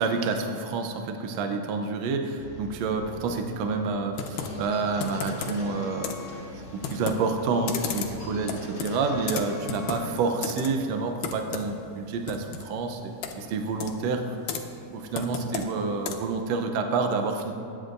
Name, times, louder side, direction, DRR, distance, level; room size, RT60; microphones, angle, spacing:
voice 1, 0.0-6.1 6.7-14.4 14.9-17.5, right 4 dB, 75° right, 4 dB, 1.7 m, -28 dB
sound 1, 2.4-10.3, left 2 dB, 40° left, 2.7 m, -42 dB
Computer keyboard, 4.1-16.4, left 6 dB, 85° left, 2.4 m, -36 dB
22.5 x 9.8 x 2.6 m, 2.7 s
omnidirectional pair, 3.6 m